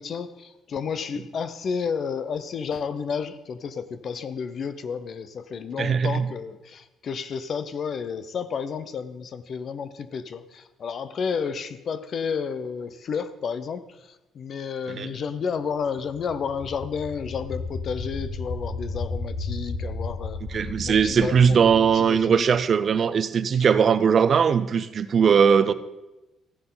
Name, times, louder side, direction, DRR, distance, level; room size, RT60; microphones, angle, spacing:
voice 1, 0.0-22.4 23.5-23.6, left 6 dB, 50° left, 0.7 m, -31 dB
voice 2, 5.8-6.3 14.9-15.1 20.5-25.7, right 7 dB, 45° right, 0.5 m, -20 dB
sound 1, 16.1-22.7, left 3 dB, 75° left, 1.3 m, -34 dB
15.0 x 9.8 x 3.9 m
cardioid pair, 125°, 0 cm